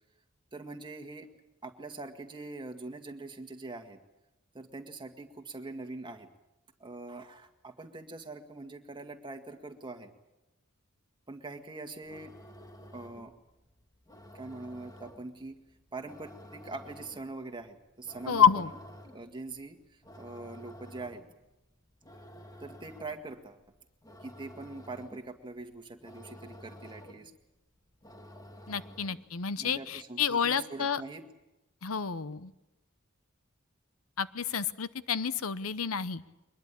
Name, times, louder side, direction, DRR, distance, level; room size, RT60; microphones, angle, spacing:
voice 1, 0.5-1.3 1.6-4.0 4.5-6.3 6.8-10.1 11.3-12.3 12.9-13.3 14.3-15.6 15.9-18.7 19.1-21.2 22.6-23.6 24.2-27.3 29.6-31.2, right 3 dB, 25° right, 5 dB, 2.0 m, -43 dB
sound 1, 12.0-29.4, equal, 20° left, 1.7 m, -52 dB
voice 2, 18.3-18.7 28.7-31.0 31.8-32.5 34.2-36.2, left 7 dB, 85° left, 15 dB, 0.8 m, -29 dB
23.0 x 20.5 x 8.6 m, 0.98 s
head